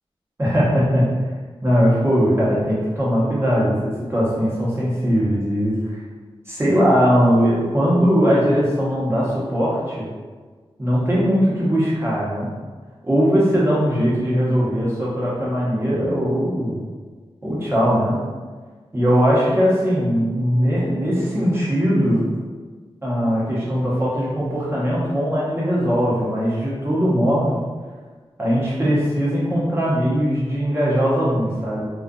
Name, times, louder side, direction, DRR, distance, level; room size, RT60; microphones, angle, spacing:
voice 1, 0.4-1.1 1.6-6.0 6.5-10.1 10.8-12.5 13.0-16.8 17.4-18.2 18.9-22.3 23.0-27.6 28.4-31.8, equal, 25° right, -8 dB, 1.0 m, -20 dB
2.5 x 2.4 x 2.4 m, 1.4 s
cardioid pair, 65°, 10 cm